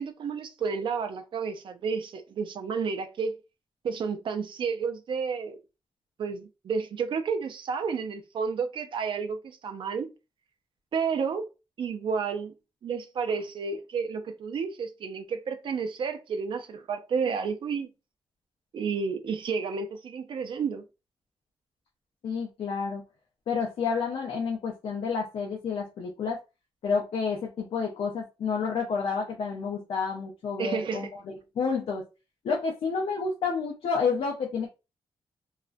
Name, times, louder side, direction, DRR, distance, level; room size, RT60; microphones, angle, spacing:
voice 1, 0.0-3.4 3.8-5.6 6.2-10.1 10.9-11.5 11.8-12.5 12.8-17.9 18.7-20.8 30.6-31.1, right 5 dB, 60° right, 0.4 m, -31 dB
voice 2, 22.2-23.0 23.5-26.4 26.8-32.0 32.4-34.7, left 5 dB, 75° left, 0.5 m, -30 dB
2.4 x 2.1 x 2.5 m
wide cardioid pair, 145°, 10 cm